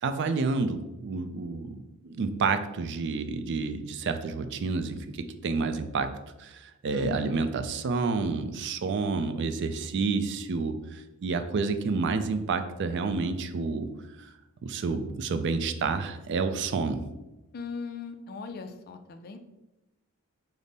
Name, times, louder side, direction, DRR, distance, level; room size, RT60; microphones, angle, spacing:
voice 1, 0.0-6.1 6.4-13.9 14.2-14.3 14.6-17.0, right 4 dB, 50° right, 9 dB, 0.3 m, -29 dB
voice 2, 6.9-7.4 17.5-19.4, left 4 dB, 45° left, 7 dB, 0.3 m, -38 dB
5.1 x 2.0 x 4.0 m, 1.0 s
head